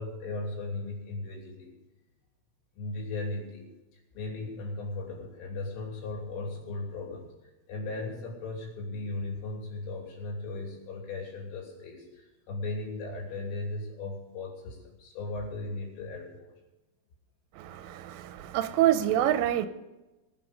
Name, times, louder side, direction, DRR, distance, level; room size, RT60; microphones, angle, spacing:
voice 1, 0.0-1.7 2.8-3.7 4.1-7.3 7.7-16.5, left 2 dB, 80° left, 0 dB, 5.6 m, -37 dB
voice 2, 17.6-19.7, right 12 dB, 90° right, 11 dB, 3.3 m, -26 dB
21.5 x 8.5 x 5.3 m, 1.0 s
omnidirectional pair, 5.7 m